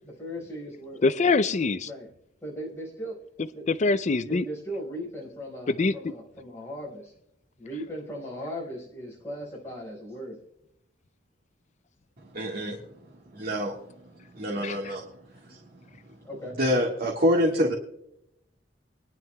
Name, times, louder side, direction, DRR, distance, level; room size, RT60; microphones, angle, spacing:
voice 1, 0.0-1.0 1.8-2.1 2.4-3.2 3.5-3.6 4.2-7.1 7.6-10.4 16.2-16.6, equal, 15° left, -3 dB, 4.9 m, -38 dB
voice 2, 1.0-1.9 3.7-4.5 5.7-6.1 14.6-14.9, left 3 dB, 40° left, 14 dB, 0.4 m, -24 dB
voice 3, 12.3-12.8 13.3-13.7 14.3-15.1 15.5-15.6 16.6-17.7, equal, 55° right, -2 dB, 1.6 m, -25 dB
24.5 x 11.0 x 2.3 m, 0.80 s
head